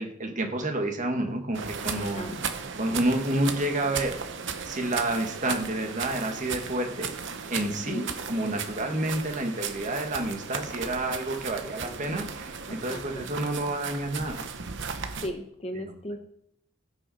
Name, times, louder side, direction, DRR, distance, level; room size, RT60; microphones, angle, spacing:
voice 1, 0.0-2.4 2.8-4.2 4.6-7.1 7.5-14.4 15.7-15.9, right 1 dB, 35° right, 3 dB, 1.7 m, -29 dB
sound 1, 1.5-15.3, right 6 dB, 55° right, 1.0 m, -36 dB
voice 2, 1.9-2.4 7.6-8.1 12.7-13.3 15.1-16.2, equal, 25° left, 6 dB, 1.0 m, -37 dB
16.0 x 6.3 x 4.3 m, 0.72 s
head